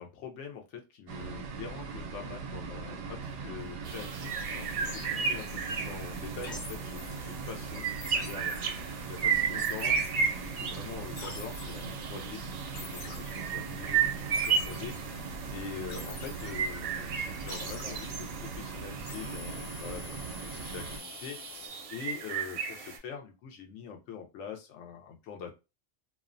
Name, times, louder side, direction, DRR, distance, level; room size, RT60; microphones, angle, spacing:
voice 1, 0.0-8.6 9.1-10.0 10.4-25.5, left 7 dB, 80° left, 3 dB, 0.9 m, -44 dB
sound 1, 1.1-21.0, right 4 dB, 85° right, 0.9 m, -40 dB
sound 2, 3.8-23.0, right 6 dB, 65° right, 0.7 m, -34 dB
sound 3, 3.9-21.7, left 3 dB, 50° left, 0.7 m, -48 dB
2.5 x 2.1 x 2.4 m, 0.27 s
omnidirectional pair, 1.2 m